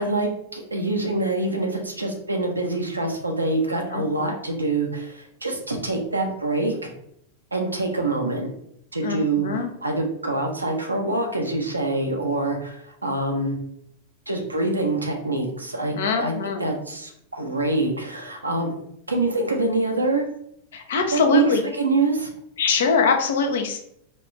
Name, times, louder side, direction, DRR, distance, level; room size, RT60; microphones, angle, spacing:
voice 1, 0.0-6.9 7.5-8.5 8.9-13.5 14.3-18.8 19.1-20.2 21.1-21.4 21.8-22.3, right 2 dB, 80° right, 2 dB, 0.7 m, -25 dB
voice 2, 3.9-4.3 9.0-9.7 15.9-16.7 20.7-21.6 22.6-23.8, left 5 dB, 60° left, 5 dB, 0.6 m, -23 dB
4.2 x 2.4 x 3.1 m, 0.73 s
figure-of-eight pair, 90°, 0 cm